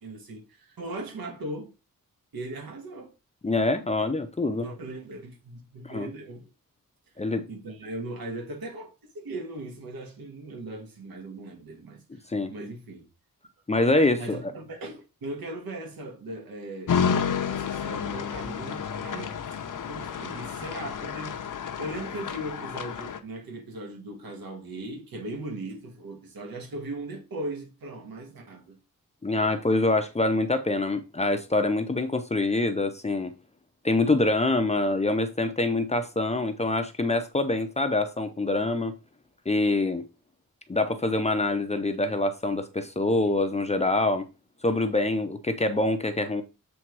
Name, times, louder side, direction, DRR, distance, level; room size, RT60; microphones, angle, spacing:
voice 1, 0.0-1.7 2.3-3.1 4.6-6.5 7.5-12.0 12.5-13.1 14.2-16.9 17.5-19.4 19.9-21.4 21.8-28.8, right 1 dB, 80° right, 1.9 m, -38 dB
voice 2, 3.4-4.7 5.8-6.1 7.2-7.4 12.1-12.5 13.7-14.5 29.2-33.3 33.8-38.9 39.5-40.0 40.7-44.2 44.6-46.4, left 2 dB, 20° left, 0.6 m, -25 dB
sound 1, 16.9-23.2, left 7 dB, 60° left, 0.8 m, -30 dB
7.4 x 3.5 x 4.6 m
wide cardioid pair, 175°, 35 cm